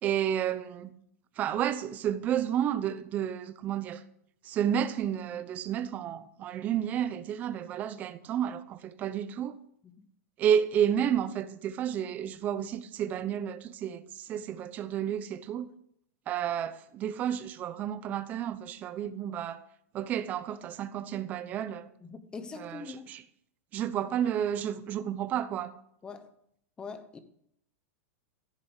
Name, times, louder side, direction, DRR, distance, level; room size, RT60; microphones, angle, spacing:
voice 1, 0.0-1.0 1.4-4.0 4.4-9.6 10.4-15.7 16.3-19.6 19.9-21.9 22.6-23.2 23.7-25.7, right 9 dB, 20° right, 0.7 m, -31 dB
voice 2, 22.0-23.1 26.0-26.3 26.8-27.2, left 4 dB, 10° left, 1.0 m, -43 dB
15.0 x 6.9 x 8.1 m
supercardioid pair, 175°, 8 cm